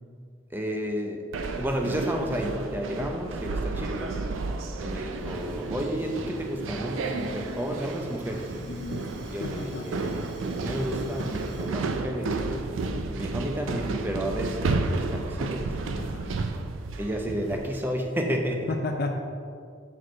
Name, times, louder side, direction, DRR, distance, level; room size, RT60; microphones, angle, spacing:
voice 1, 0.5-1.3 1.6-4.2 4.8-8.5 9.3-10.1 10.6-12.7 13.1-15.8 17.0-18.7, equal, 10° right, 2 dB, 0.5 m, -31 dB
sound 1, 1.3-17.8, right 3 dB, 85° right, 0.4 m, -32 dB
Fire, 5.2-11.8, right 1 dB, 60° right, 0.8 m, -41 dB
voice 2, 8.6-9.0 9.4-9.9 16.0-16.4 18.7-19.1, left 3 dB, 55° left, 3 dB, 0.5 m, -33 dB
6.1 x 4.9 x 4.3 m, 2.3 s
head